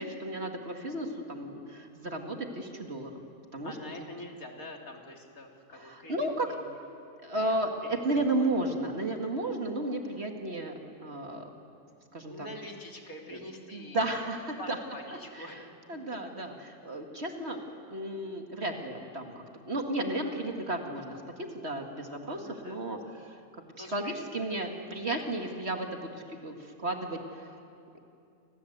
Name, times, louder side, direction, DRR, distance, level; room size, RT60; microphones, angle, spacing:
voice 1, 0.0-3.1 3.5-3.7 5.7-6.5 7.2-10.7 11.0-11.5 12.1-12.3 13.3-13.4 13.7-14.8 15.4-15.6 15.9-17.6 17.9-19.3 19.7-23.4 23.8-27.5, right 1 dB, 40° right, 3 dB, 2.2 m, -33 dB
voice 2, 3.6-6.8 7.2-7.6 8.4-8.5 12.3-14.1 14.6-15.7 22.4-23.0 23.8-24.2 24.5-24.6, left 1 dB, 60° left, 1 dB, 3.3 m, -45 dB
29.0 x 25.5 x 8.0 m, 2.6 s
omnidirectional pair, 1.7 m